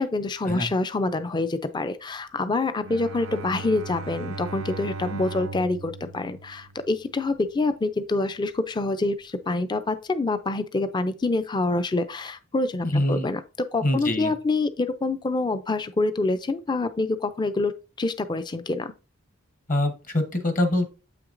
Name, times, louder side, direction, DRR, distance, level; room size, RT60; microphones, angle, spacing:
voice 1, 0.0-13.4 13.7-18.9, left 2 dB, 20° left, 0.4 m, -26 dB
Bowed string instrument, 2.8-7.2, right 3 dB, 85° right, 0.6 m, -37 dB
voice 2, 12.8-13.3 13.8-14.3 19.7-20.9, left 1 dB, 40° left, 1.1 m, -24 dB
7.7 x 5.9 x 2.5 m
head